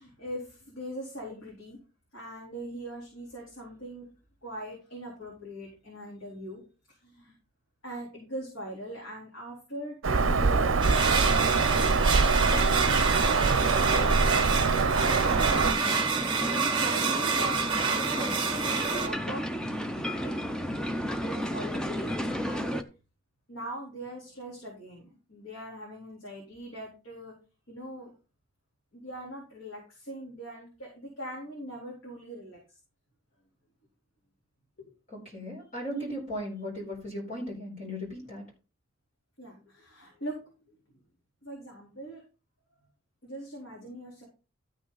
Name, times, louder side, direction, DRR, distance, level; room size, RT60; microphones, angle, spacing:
voice 1, 0.0-1.8 2.1-4.1 4.4-6.6 6.9-7.3 7.8-15.3 16.4-19.5 20.2-20.8 21.2-22.2 22.4-22.8 23.5-27.3 27.7-28.1 28.9-32.6 39.4-40.8 41.4-42.2 43.2-44.2, right 1 dB, 75° left, -3 dB, 4.0 m, -41 dB
Bird vocalization bird call bird song, 10.0-15.7, right 4 dB, 65° right, 0.7 m, -24 dB
sound 1, 10.8-19.1, right 5 dB, 20° right, 1.6 m, -28 dB
sound 2, 15.2-22.8, equal, 5° left, 0.5 m, -33 dB
voice 2, 35.1-38.4, equal, 35° left, -2 dB, 4.3 m, -37 dB
13.0 x 6.0 x 4.0 m, 0.33 s
head